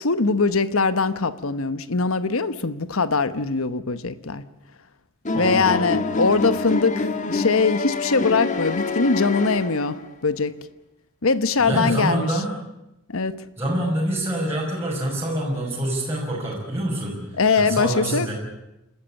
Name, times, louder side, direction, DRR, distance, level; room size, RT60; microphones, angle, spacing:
voice 1, 0.0-4.4 5.3-10.5 11.2-12.3 13.1-13.4 17.4-18.3, left 4 dB, 70° left, 13 dB, 1.1 m, -22 dB
sound 1, 5.2-10.1, left 3 dB, 35° left, 1.5 m, -26 dB
voice 2, 5.3-6.3 11.6-12.5 13.6-18.3, right 1 dB, 10° right, -5 dB, 5.8 m, -26 dB
29.0 x 13.5 x 8.8 m, 0.92 s
head